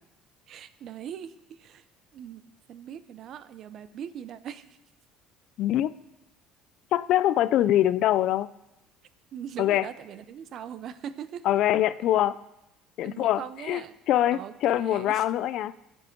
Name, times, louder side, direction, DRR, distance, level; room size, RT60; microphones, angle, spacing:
voice 1, 0.5-1.8 2.1-2.4 2.7-4.8 9.3-11.5 13.0-13.9 14.3-15.2, right 9 dB, 45° right, 14 dB, 0.6 m, -40 dB
voice 2, 5.6-5.9 6.9-8.5 9.6-9.8 11.5-12.3 13.0-13.4 13.7-13.8 14.1-15.7, left 13 dB, 55° left, 16 dB, 0.4 m, -23 dB
16.5 x 7.2 x 4.5 m, 0.89 s
cardioid pair, 150°, 0 cm